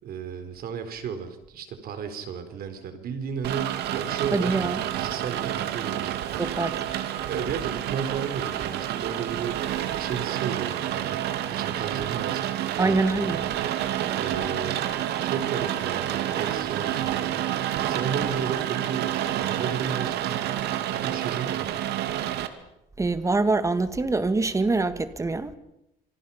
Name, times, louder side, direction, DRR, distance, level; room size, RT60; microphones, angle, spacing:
voice 1, 0.0-6.4 7.2-11.2 11.5-13.0 13.3-14.9 15.2-17.3 17.9-20.5 20.9-21.7, right 7 dB, 60° right, 4.2 m, -34 dB
Rain, 3.4-22.5, right 11 dB, 80° right, 2.3 m, -29 dB
voice 2, 4.3-4.8 6.4-6.7 12.8-13.4 23.0-25.5, right 3 dB, 20° right, 2.0 m, -24 dB
Dog, 6.7-12.2, right 5 dB, 40° right, 5.0 m, -48 dB
27.5 x 25.0 x 5.8 m
cardioid pair, 110°, 17 cm